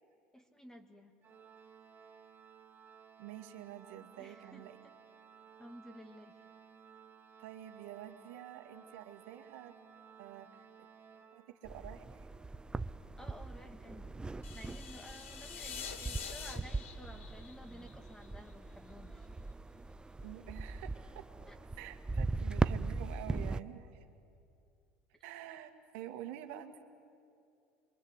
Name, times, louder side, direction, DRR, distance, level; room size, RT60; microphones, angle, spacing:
voice 1, 0.3-1.1 4.2-4.9 5.6-6.4 13.2-14.1 14.5-19.5 21.5-21.6, equal, 10° left, 5 dB, 2.3 m, -53 dB
Organ, 1.2-12.0, right 7 dB, 30° right, 2.6 m, -58 dB
voice 2, 3.2-4.7 7.4-9.7 10.2-10.7 11.3-12.3 20.2-21.3 21.8-24.1 25.2-26.8, right 12 dB, 70° right, 6 dB, 2.1 m, -48 dB
sound 1, 11.6-23.6, right 3 dB, 10° right, 0.7 m, -39 dB
sound 2, 14.4-18.5, left 7 dB, 85° left, 2.0 m, -46 dB
28.0 x 23.0 x 8.3 m, 2.5 s
hypercardioid pair, 85°, 7 cm